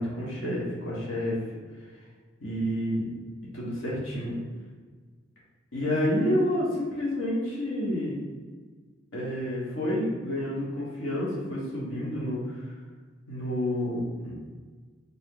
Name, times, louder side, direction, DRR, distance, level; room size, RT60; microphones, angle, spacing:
voice 1, 0.0-1.4 2.4-3.0 3.5-4.4 5.7-8.1 9.1-12.7 13.3-14.3, equal, 75° left, -6 dB, 1.1 m, -29 dB
4.1 x 2.9 x 3.7 m, 1.5 s
head